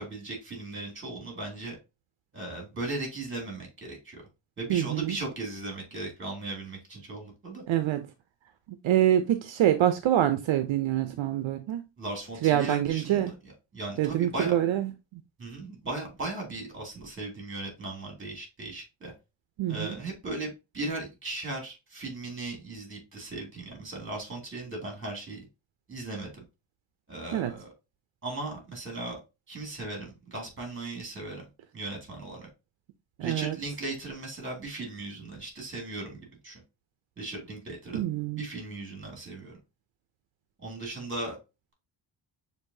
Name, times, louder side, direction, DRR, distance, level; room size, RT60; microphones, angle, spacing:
voice 1, 0.0-1.8 2.3-4.2 4.6-7.6 12.0-13.3 13.7-14.6 15.4-19.1 19.7-20.5 20.7-25.4 25.9-26.4 27.1-27.7 28.2-29.2 29.5-31.4 31.7-32.5 33.2-36.6 37.2-38.0 38.4-39.6 40.6-41.4, right 2 dB, 25° right, 2.1 m, -37 dB
voice 2, 4.7-5.2 7.7-8.0 8.8-11.8 12.4-13.3 14.0-15.2 19.6-19.9 27.3-27.5 33.2-33.6 37.9-38.4, right 12 dB, 70° right, 0.6 m, -25 dB
6.4 x 2.7 x 2.6 m
wide cardioid pair, 145°, 47 cm